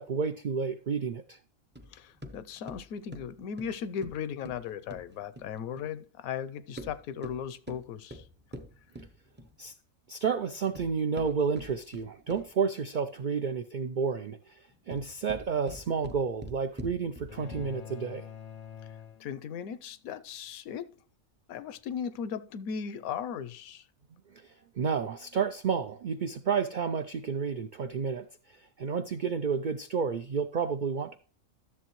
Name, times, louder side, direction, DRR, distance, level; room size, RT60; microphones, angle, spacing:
voice 1, 0.0-1.4 9.6-9.7 10.1-18.2 24.3-31.2, right 6 dB, 85° right, 0.4 m, -31 dB
sound 1, 1.7-5.9 6.6-9.7 10.4-12.6 14.7-17.9, equal, 15° right, 0.3 m, -46 dB
voice 2, 1.9-8.2 19.2-20.9 21.5-23.8, left 7 dB, 85° left, 1.1 m, -37 dB
sound 2, 17.3-19.8, left 9 dB, 60° left, 0.4 m, -46 dB
12.5 x 7.0 x 3.0 m
omnidirectional pair, 1.4 m